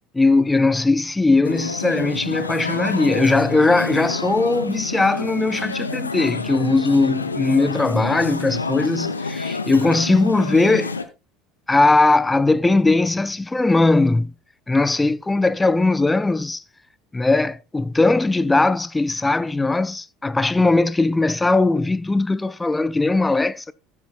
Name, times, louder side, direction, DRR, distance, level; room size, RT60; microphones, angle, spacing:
voice 1, 0.1-10.9 11.7-14.3 14.7-16.6 17.1-23.7, left 3 dB, 10° left, 0.5 m, -19 dB
sound 1, 1.4-11.1, left 4 dB, 80° left, 0.7 m, -28 dB
14.5 x 8.3 x 2.3 m
figure-of-eight pair, 65°, 0 cm